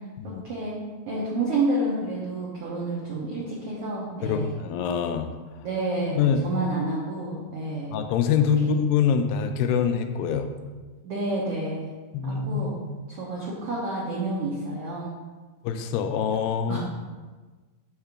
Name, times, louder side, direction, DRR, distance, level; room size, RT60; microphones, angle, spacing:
voice 1, 0.2-0.8 1.1-4.5 5.6-7.9 8.6-8.7 11.0-11.9 12.2-12.7 13.1-15.1 16.7-16.8, right 2 dB, 80° right, -5 dB, 1.3 m, -29 dB
voice 2, 4.2-5.3 6.2-6.5 7.9-10.5 12.1-12.8 15.6-16.8, left 7 dB, 85° left, 7 dB, 2.3 m, -24 dB
5.6 x 3.7 x 5.9 m, 1.3 s
omnidirectional pair, 4.1 m